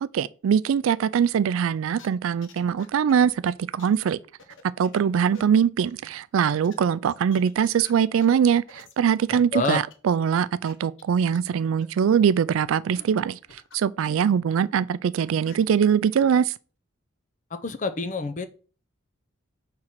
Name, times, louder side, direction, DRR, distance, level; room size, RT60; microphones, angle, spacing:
voice 1, 0.0-4.2 4.8-13.4 13.7-16.5, right 7 dB, 75° right, 0.3 m, -22 dB
sound 1, 1.8-2.1 2.4-3.5 3.8-4.0 4.3-5.1 5.3-5.4 5.9-6.0 6.6-6.7 7.0-8.9 9.9-10.0 10.2-10.3 10.7-10.8 11.0-11.1 11.3-11.4 11.8-11.9 12.6-12.7 13.0-13.8 14.0-14.4 14.8-14.9 15.2-15.6, left 4 dB, 65° left, 0.9 m, -49 dB
voice 2, 9.3-9.8 17.5-18.5, left 3 dB, 35° left, 0.5 m, -28 dB
5.7 x 3.7 x 4.5 m
head